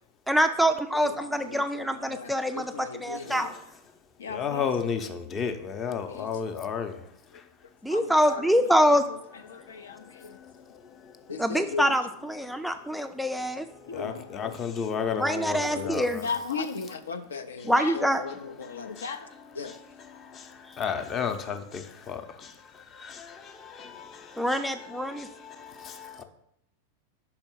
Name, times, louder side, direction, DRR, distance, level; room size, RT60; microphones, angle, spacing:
voice 1, 0.3-3.5 7.8-9.0 11.4-12.0 12.3-13.7 15.1-16.2 17.7-18.2 24.4-25.3, equal, ahead, 7 dB, 0.3 m, -25 dB
voice 2, 0.9-3.5 4.2-4.7 5.9-6.4 7.3-7.4 7.9-10.4 11.3-12.1 13.9-14.6 15.3-19.7, left 5 dB, 65° left, 8 dB, 0.5 m, -37 dB
voice 3, 4.3-7.0 13.9-16.2 20.3-20.5 20.8-22.2 23.0-26.2, left 6 dB, 30° left, 8 dB, 0.7 m, -33 dB
5.6 x 4.3 x 5.6 m, 0.77 s
figure-of-eight pair, 90°, 0 cm